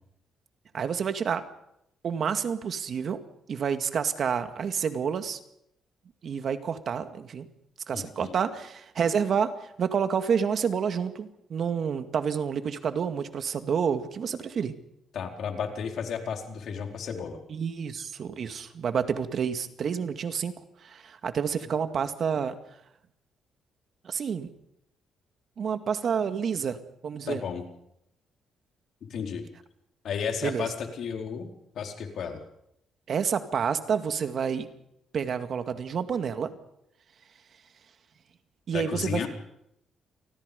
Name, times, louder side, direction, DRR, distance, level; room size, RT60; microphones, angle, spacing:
voice 1, 0.7-1.4 2.0-3.2 3.5-5.4 6.2-7.5 7.9-9.5 9.8-14.7 17.5-20.5 20.8-22.5 24.0-24.5 25.6-26.8 27.0-27.4 30.4-30.7 33.1-34.7 35.1-36.5 38.7-39.3, right 7 dB, 55° right, 8 dB, 2.1 m, -29 dB
voice 2, 7.9-8.3 15.1-17.4 27.3-27.6 29.0-29.4 30.0-31.5 31.7-32.4 38.7-39.3, left 6 dB, 65° left, 3 dB, 4.5 m, -33 dB
28.5 x 20.0 x 5.4 m, 0.77 s
cardioid pair, 90°, 0 cm